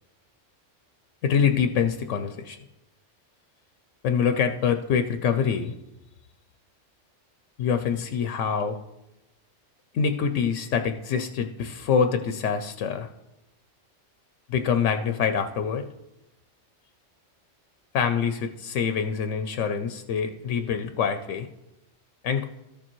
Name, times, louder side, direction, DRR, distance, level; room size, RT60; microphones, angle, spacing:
voice 1, 1.2-2.6 4.0-5.7 7.6-8.8 9.9-13.1 14.5-15.8 17.9-21.5 22.2-22.5, left 7 dB, 85° left, 8 dB, 0.9 m, -25 dB
13.5 x 6.7 x 3.0 m, 0.94 s
omnidirectional pair, 1.2 m